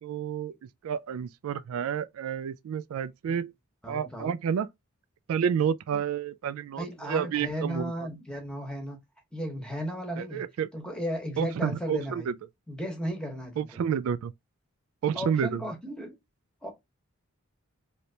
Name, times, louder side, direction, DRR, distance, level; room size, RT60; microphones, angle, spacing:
voice 1, 0.0-3.5 3.9-4.7 5.3-7.9 10.2-10.7 11.4-12.3 13.6-14.3 15.0-15.6, right 7 dB, 80° right, 0.3 m, -30 dB
voice 2, 3.8-4.4 5.9-6.0 6.8-9.0 9.3-10.4 10.7-12.3 12.7-13.8 15.1-16.1 16.6-16.7, equal, 5° left, 1.0 m, -35 dB
3.2 x 2.8 x 2.7 m
head